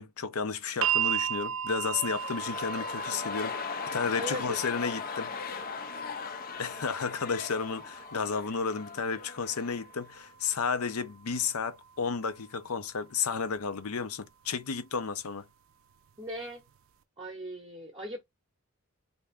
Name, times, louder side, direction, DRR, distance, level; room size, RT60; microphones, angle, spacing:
voice 1, 0.0-3.5 3.9-5.3 6.6-15.5, left 5 dB, 85° left, 0.7 m, -32 dB
sound 1, 0.8-12.9 14.0-14.1, right 9 dB, 65° right, 0.3 m, -37 dB
sound 2, 1.8-9.9 10.2-10.3, left 7 dB, 40° left, 0.3 m, -39 dB
voice 2, 4.2-4.6 16.2-16.6 17.2-18.2, equal, 20° right, 0.7 m, -38 dB
3.4 x 2.6 x 3.4 m
head